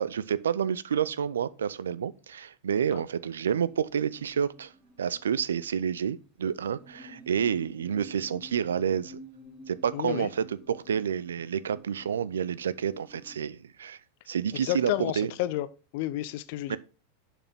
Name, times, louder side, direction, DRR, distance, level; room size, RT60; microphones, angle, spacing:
voice 1, 0.0-4.7 5.0-9.2 9.7-14.0 14.3-15.3 16.7-16.8, right 8 dB, 85° right, 0.4 m, -29 dB
sound 1, 3.6-5.5 5.7-5.8 6.5-13.5, equal, 10° right, 2.9 m, -51 dB
voice 2, 9.9-10.3 14.5-15.7 15.9-16.8, left 14 dB, 60° left, 0.6 m, -31 dB
6.8 x 6.0 x 3.5 m
hypercardioid pair, 105°, 0 cm